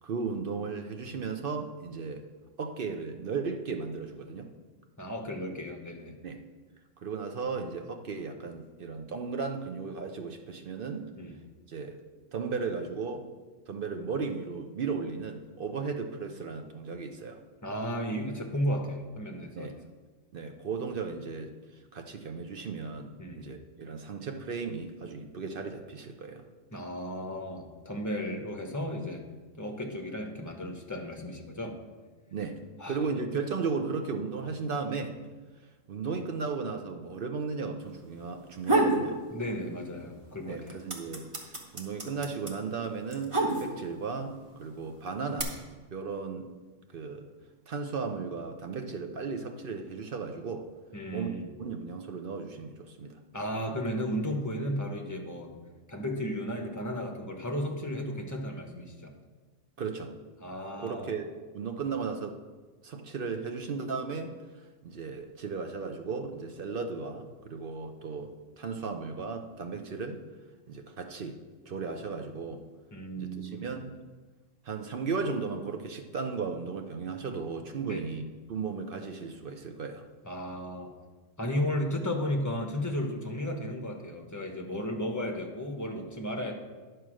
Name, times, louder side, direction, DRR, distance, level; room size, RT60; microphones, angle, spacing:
voice 1, 0.0-2.3 2.6-4.5 6.2-6.4 7.0-11.1 11.7-12.0 12.3-13.3 13.7-17.4 19.6-19.7 20.3-21.5 21.9-26.4 32.3-32.6 32.9-35.2 35.9-39.2 40.5-45.5 45.9-46.5 46.9-47.3 47.7-50.7 51.1-53.2 59.8-60.1 60.8-61.3 61.5-62.4 62.8-64.3 64.8-70.2 70.7-71.4 71.7-72.6 73.2-73.9 74.6-78.2 78.5-80.1, right 5 dB, 55° right, 5 dB, 0.8 m, -35 dB
voice 2, 5.0-6.1 11.2-11.3 17.6-19.7 23.2-23.5 26.7-29.2 29.6-31.8 32.8-33.0 39.3-40.8 50.9-51.5 53.3-55.5 55.9-59.1 60.4-61.1 72.9-73.7 77.8-78.1 80.2-80.9 81.4-86.5, equal, 15° left, 3 dB, 1.0 m, -34 dB
sound 1, 38.4-39.0 39.4-40.2 40.4-44.0 44.8-45.4, right 2 dB, 25° right, 1.1 m, -28 dB
10.5 x 4.7 x 6.2 m, 1.3 s
omnidirectional pair, 1.3 m